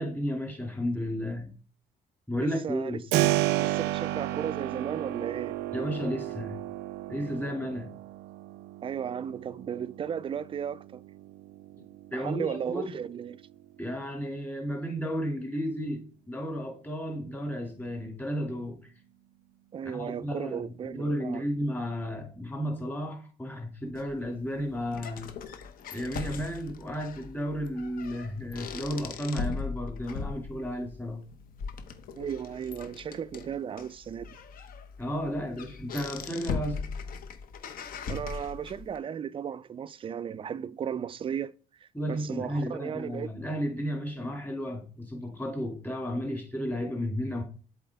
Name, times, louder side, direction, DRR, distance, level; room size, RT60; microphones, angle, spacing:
voice 1, 0.0-1.5 2.3-3.0 5.7-6.6 7.1-7.9 12.1-12.9 13.8-18.8 19.8-25.3 25.9-31.2 35.0-36.8 41.9-47.4, equal, 10° left, 2.3 m, -33 dB
voice 2, 2.4-3.2 3.6-5.5 8.8-11.0 12.1-13.4 19.7-21.4 32.2-34.3 38.1-41.5 41.8-43.3, right 8 dB, 30° right, 0.4 m, -35 dB
Keyboard (musical), 3.1-13.8, right 15 dB, 90° right, 0.4 m, -33 dB
sound 1, 24.0-39.0, left 5 dB, 60° left, 1.0 m, -39 dB
7.6 x 4.4 x 3.5 m
cardioid pair, 110°, 17 cm